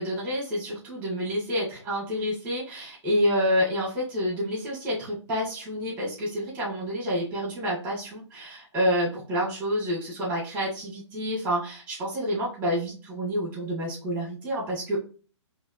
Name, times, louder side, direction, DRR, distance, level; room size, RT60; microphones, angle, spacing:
voice 1, 0.0-15.0, equal, 10° right, -5 dB, 1.8 m, -28 dB
4.4 x 2.8 x 2.4 m, 0.37 s
figure-of-eight pair, 130°, 16 cm